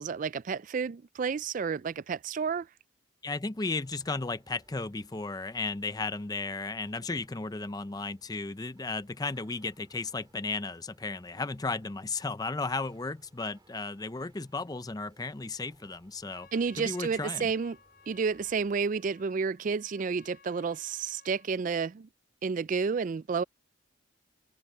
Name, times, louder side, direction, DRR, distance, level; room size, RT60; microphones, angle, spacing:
voice 1, 0.0-2.7 16.5-17.8 18.1-22.1 22.4-23.4, right 5 dB, 40° right, 0.3 m, -31 dB
voice 2, 3.2-16.5 16.8-17.5, left 3 dB, 20° left, 0.5 m, -34 dB
sound 1, 3.5-18.9, right 1 dB, 20° right, 2.8 m, -65 dB
Trumpet, 16.1-21.6, left 6 dB, 50° left, 6.6 m, -58 dB
open air
head